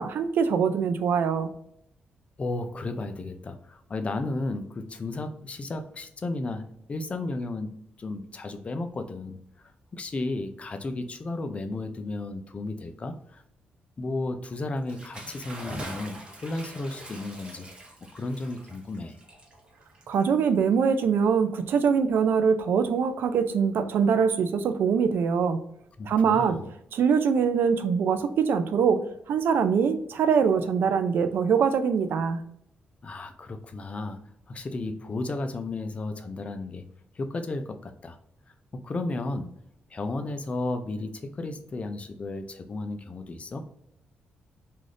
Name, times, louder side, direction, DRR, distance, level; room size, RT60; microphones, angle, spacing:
voice 1, 0.0-1.5 20.1-25.6 26.1-26.6 26.9-29.0 29.3-32.4, right 6 dB, 70° right, 9 dB, 0.4 m, -23 dB
voice 2, 2.4-13.4 14.0-17.7 18.1-19.2 26.0-26.7 33.0-34.2 34.5-36.9 37.1-38.2 38.7-39.5 39.9-43.6, left 2 dB, 35° left, 7 dB, 0.4 m, -34 dB
Bathtub (filling or washing) / Splash splatter, 14.8-20.7, right 1 dB, 25° right, 0.8 m, -43 dB
2.5 x 2.4 x 3.3 m, 0.74 s
cardioid pair, 90°, 4 cm